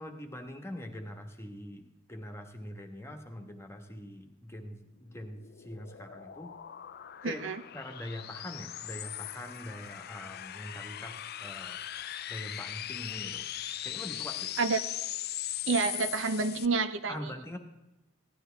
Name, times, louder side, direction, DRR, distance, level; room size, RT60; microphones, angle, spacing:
voice 1, 0.0-6.5 7.2-7.4 7.7-11.8 12.3-13.4 13.8-14.5 17.1-17.6, left 1 dB, 15° left, 4 dB, 1.3 m, -43 dB
sound 1, 4.8-16.7, left 12 dB, 50° left, 0.4 m, -40 dB
voice 2, 7.2-7.6 14.6-14.8 15.7-17.3, right 4 dB, 65° right, 10 dB, 0.7 m, -29 dB
16.0 x 12.0 x 3.4 m, 0.98 s
head